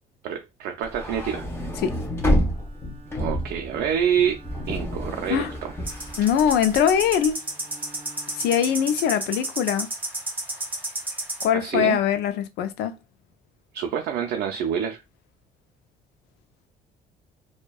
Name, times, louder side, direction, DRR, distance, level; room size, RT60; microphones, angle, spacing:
voice 1, 0.2-1.5 3.1-4.4 4.7-5.7 11.5-12.0 13.7-15.0, right 8 dB, 75° right, 0.4 m, -27 dB
sound 1, 0.8-7.1, equal, 15° left, 0.7 m, -29 dB
Bowed string instrument, 2.4-9.6, right 2 dB, 35° right, 0.6 m, -49 dB
sound 2, 5.9-11.4, right 2 dB, 10° right, 1.1 m, -31 dB
voice 2, 6.2-7.4 8.3-9.9 11.4-12.9, left 9 dB, 80° left, 0.4 m, -22 dB
2.6 x 2.1 x 2.3 m
cardioid pair, 110°, 17 cm